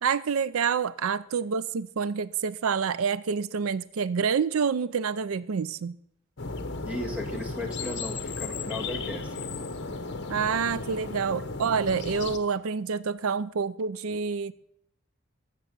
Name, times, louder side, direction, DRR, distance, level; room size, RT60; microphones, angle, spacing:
voice 1, 0.0-6.0 10.3-14.5, right 6 dB, 85° right, 0.4 m, -27 dB
sound 1, 6.4-12.4, left 3 dB, 55° left, 1.1 m, -35 dB
voice 2, 6.8-9.5, equal, 5° right, 1.6 m, -36 dB
14.0 x 6.9 x 7.6 m
head